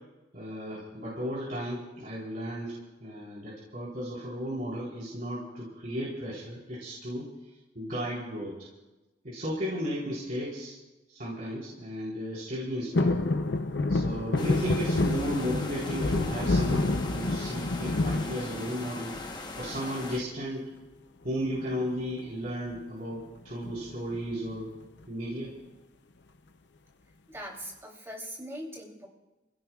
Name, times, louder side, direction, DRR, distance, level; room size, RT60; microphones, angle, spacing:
voice 1, 0.3-7.3 7.7-8.5 9.2-10.8 11.1-13.2 13.9-20.6 21.2-24.7 25.1-25.5, equal, 50° right, -7 dB, 4.1 m, -34 dB
sound 1, 12.9-19.1 19.5-20.2 21.4-21.9 22.1-22.2 22.5-22.8 23.6-24.5 25.0-25.1, left 2 dB, 75° left, 0.7 m, -28 dB
sound 2, 14.4-20.2, left 2 dB, 25° left, 1.1 m, -40 dB
voice 2, 27.3-29.1, equal, 15° right, -2 dB, 3.2 m, -41 dB
28.5 x 17.0 x 2.4 m, 1.1 s
head